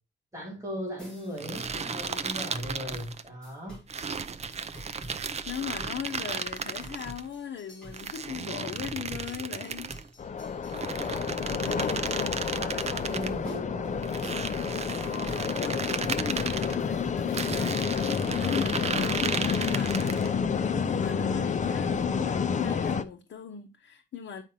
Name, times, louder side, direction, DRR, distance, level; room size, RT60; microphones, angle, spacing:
voice 1, 0.3-3.8 11.2-11.9 12.6-14.0, equal, 15° right, 2.7 m, -38 dB
sound 1, 1.0-17.5, right 1 dB, 5° left, 4.1 m, -47 dB
sound 2, 1.4-3.3 3.9-7.2 7.9-10.1 10.7-13.3 14.0-16.8 17.3-20.3, right 5 dB, 35° right, 0.5 m, -35 dB
voice 2, 5.5-9.9 11.3-12.5 14.6-24.4, left 8 dB, 85° left, 0.9 m, -39 dB
sound 3, 10.2-23.0, left 6 dB, 40° left, 0.5 m, -29 dB
9.0 x 5.0 x 2.8 m
wide cardioid pair, 175°, 19 cm